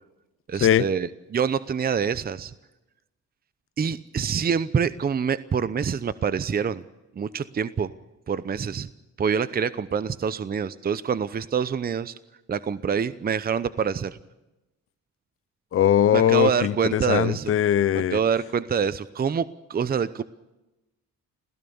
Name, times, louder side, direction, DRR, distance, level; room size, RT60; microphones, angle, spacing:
voice 1, 0.5-2.5 3.8-6.8 7.2-7.9 8.3-8.9 9.2-12.1 12.5-14.2 16.1-17.5 17.9-20.2, right 6 dB, 30° right, 15 dB, 0.7 m, -26 dB
voice 2, 15.7-18.2, left 10 dB, 45° left, 16 dB, 0.7 m, -20 dB
27.0 x 16.5 x 7.1 m, 1.0 s
cardioid pair, 90°, 30 cm